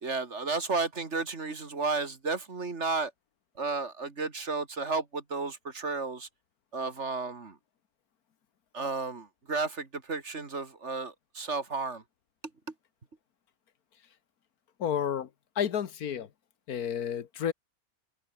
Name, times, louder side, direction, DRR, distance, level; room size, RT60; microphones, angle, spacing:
voice 1, 0.0-3.1 3.6-6.3 6.7-7.5 8.7-12.0, right 4 dB, 50° right, 2.6 m, -33 dB
voice 2, 14.8-15.3 15.6-16.3 16.7-17.5, left 8 dB, 85° left, 1.7 m, -30 dB
omnidirectional pair, 1.5 m